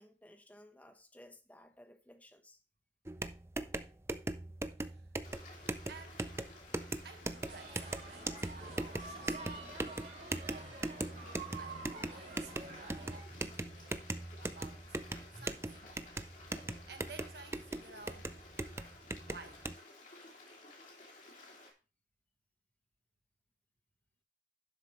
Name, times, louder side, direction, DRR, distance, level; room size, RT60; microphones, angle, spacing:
voice 1, 0.0-2.6, left 1 dB, 10° left, 1.0 m, -58 dB
sound 1, 3.1-19.8, right 2 dB, 15° right, 0.4 m, -40 dB
Stream, 5.2-21.7, left 2 dB, 45° left, 2.6 m, -55 dB
voice 2, 5.9-6.2 7.0-9.7 10.4-14.0 14.4-15.0 15.3-16.0 16.5-18.3 19.2-19.6, right 4 dB, 65° right, 1.4 m, -54 dB
sound 2, 7.5-13.2, right 3 dB, 45° right, 3.8 m, -48 dB
11.5 x 6.7 x 3.0 m
head